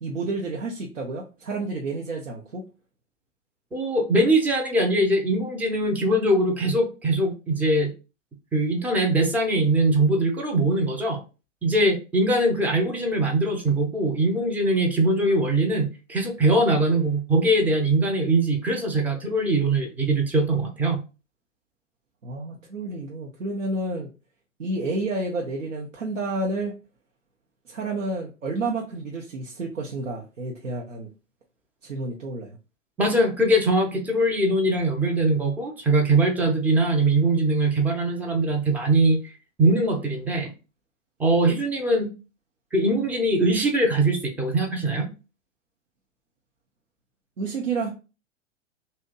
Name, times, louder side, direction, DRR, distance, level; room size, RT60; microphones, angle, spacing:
voice 1, 0.0-2.6 22.2-24.1 24.6-26.7 27.7-31.1 31.8-32.6 47.4-47.9, right 2 dB, 80° right, -2 dB, 0.7 m, -30 dB
voice 2, 3.7-7.9 8.5-11.2 11.6-21.0 33.0-39.3 39.6-40.5 41.2-42.1 42.7-45.1, right 2 dB, 5° right, 1 dB, 0.4 m, -22 dB
2.7 x 2.1 x 3.7 m, 0.32 s
figure-of-eight pair, 100°, 38 cm